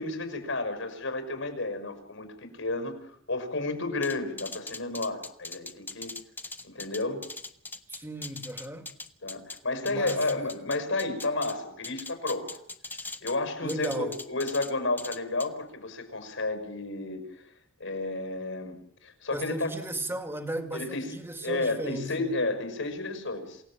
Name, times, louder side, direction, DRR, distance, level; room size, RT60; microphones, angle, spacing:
voice 1, 0.0-2.9 3.3-6.1 6.6-7.2 9.2-12.5 13.2-17.2 17.8-18.8 19.0-19.7 20.7-21.2 21.4-23.6, left 2 dB, 75° left, 6.0 m, -31 dB
sound 1, 4.0-9.6 9.9-11.5 11.8-13.4 13.7-14.7 15.0-15.5, left 3 dB, 10° left, 1.2 m, -40 dB
voice 2, 7.9-8.9 9.8-10.4 13.6-14.2 19.3-22.4, right 1 dB, 10° right, 2.3 m, -35 dB
28.0 x 18.0 x 7.5 m
head